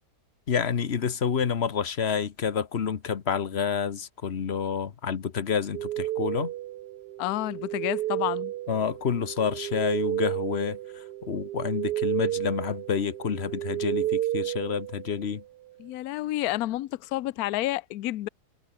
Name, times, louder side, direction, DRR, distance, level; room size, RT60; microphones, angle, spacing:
voice 1, 0.5-6.5 8.7-15.4, left 7 dB, 45° left, 1.2 m, -29 dB
sound 1, 5.7-15.4, right 14 dB, 85° right, 1.3 m, -32 dB
voice 2, 7.2-8.5 15.8-18.3, left 16 dB, 75° left, 1.1 m, -30 dB
omnidirectional pair, 1.7 m